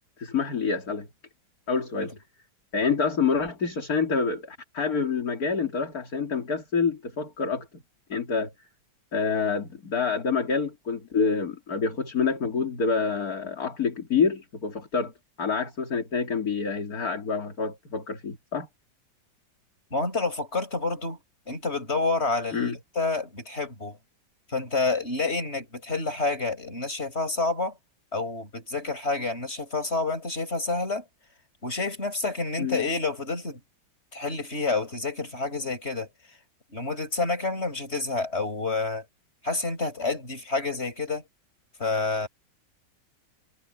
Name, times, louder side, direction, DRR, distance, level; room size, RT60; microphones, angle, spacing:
voice 1, 0.2-1.1 1.7-2.1 2.7-7.7 8.1-8.5 9.1-15.1 15.4-18.7 22.5-22.8 32.6-32.8, left 5 dB, 50° left, 3.3 m, -27 dB
voice 2, 19.9-21.2 21.5-24.0 24.5-27.8 28.1-31.0 31.6-33.6 34.1-36.1 36.7-39.0 39.4-41.2 41.8-42.3, left 3 dB, 30° left, 6.5 m, -28 dB
omnidirectional pair, 2.1 m